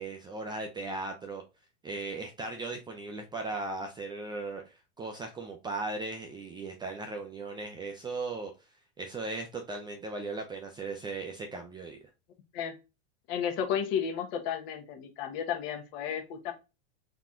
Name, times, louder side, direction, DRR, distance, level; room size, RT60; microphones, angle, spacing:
voice 1, 0.0-1.4 1.8-8.5 9.0-12.0, right 3 dB, 15° right, 3 dB, 0.4 m, -37 dB
voice 2, 13.3-16.5, left 8 dB, 50° left, 4 dB, 1.2 m, -33 dB
4.0 x 2.9 x 3.7 m, 0.27 s
supercardioid pair, 140°, 36 cm